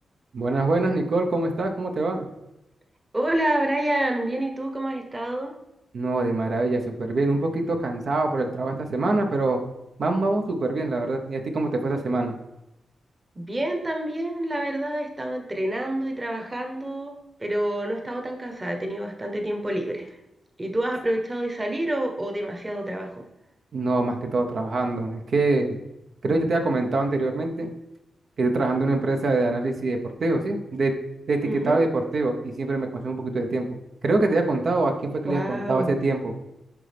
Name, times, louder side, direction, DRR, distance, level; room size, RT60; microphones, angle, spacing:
voice 1, 0.3-2.3 5.9-9.6 10.0-12.3 23.7-25.8 26.2-27.7 28.4-30.9 31.3-33.8 34.0-36.3, right 2 dB, 60° right, 3 dB, 0.9 m, -24 dB
voice 2, 3.1-5.5 13.4-17.1 17.4-20.1 20.6-23.2 31.5-31.8 35.3-35.9, right 1 dB, 20° right, 3 dB, 1.1 m, -28 dB
11.0 x 3.9 x 3.4 m, 0.92 s
cardioid pair, 85°, 0 cm